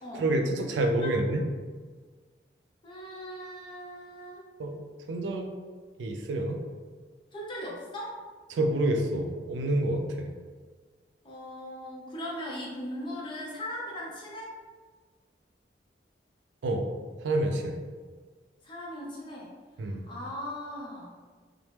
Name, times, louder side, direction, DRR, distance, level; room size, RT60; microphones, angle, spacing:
voice 1, 0.2-1.4 4.6-4.8 5.1-5.5 6.0-6.6 8.5-10.3 16.6-16.9 17.2-17.8 19.8-20.0, right 1 dB, 85° right, 4 dB, 0.4 m, -28 dB
voice 2, 1.0-1.4 2.8-4.5 7.3-8.2 11.2-14.5 18.6-19.5 19.8-21.1, equal, 30° left, -4 dB, 0.6 m, -39 dB
2.9 x 2.0 x 3.3 m, 1.5 s
head